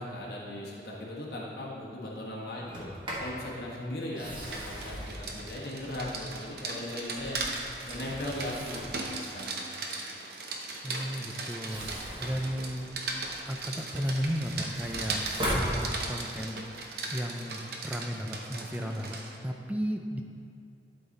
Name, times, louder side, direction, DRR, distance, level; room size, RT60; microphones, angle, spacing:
voice 1, 0.0-2.9 3.2-7.4 7.9-9.7, left 1 dB, 60° left, -5 dB, 1.3 m, -38 dB
Sliding door, 2.6-3.4 4.0-6.4 6.9-9.1 11.5-13.4 13.9-16.4, equal, 30° right, 1.4 m, -38 dB
Rain, 4.2-19.4, right 3 dB, 60° right, 0.7 m, -38 dB
voice 2, 10.8-13.0 13.5-16.7 17.1-20.2, equal, 10° right, 3 dB, 0.3 m, -34 dB
11.5 x 3.9 x 4.1 m, 2.4 s
head